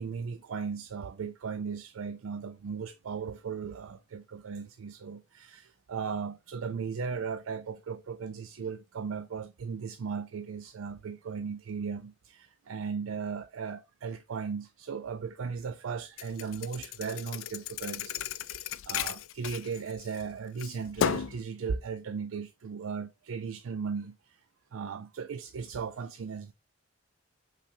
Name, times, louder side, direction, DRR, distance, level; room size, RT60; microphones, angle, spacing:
voice 1, 0.0-24.4 24.7-26.5, right 5 dB, 90° right, 0.4 m, -37 dB
Thump thud, 16.2-20.2 20.6-21.4, left 9 dB, 85° left, 0.4 m, -34 dB
5.7 x 3.4 x 2.7 m
head